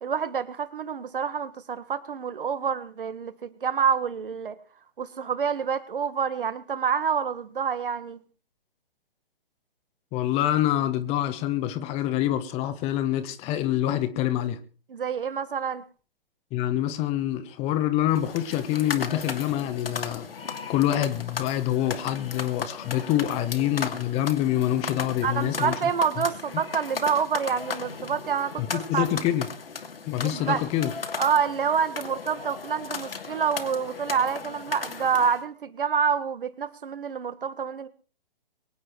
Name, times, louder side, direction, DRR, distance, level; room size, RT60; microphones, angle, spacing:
voice 1, 0.0-4.6 5.0-8.2 14.9-15.8 25.2-29.1 30.2-30.7 31.2-37.9, right 6 dB, 60° right, 1.8 m, -27 dB
voice 2, 10.1-14.6 16.5-20.3 20.7-25.7 28.7-29.5 30.0-30.9, left 12 dB, 20° left, 1.4 m, -26 dB
sound 1, 18.1-35.4, left 5 dB, 70° left, 2.6 m, -36 dB
23.5 x 9.7 x 4.7 m
figure-of-eight pair, 130°, 30 cm